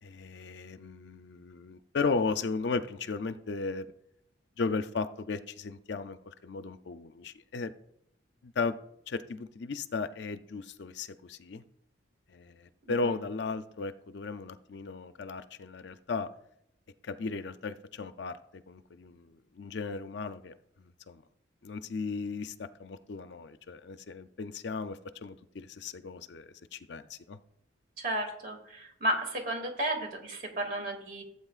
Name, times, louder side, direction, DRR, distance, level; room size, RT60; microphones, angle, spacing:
voice 1, 0.0-3.9 4.6-7.7 8.4-8.8 9.1-11.6 12.3-16.3 17.0-21.2 21.6-27.4, left 4 dB, 60° left, 11 dB, 0.5 m, -36 dB
voice 2, 28.0-31.2, right 1 dB, 45° right, 3 dB, 2.2 m, -33 dB
15.5 x 8.4 x 2.4 m, 0.76 s
head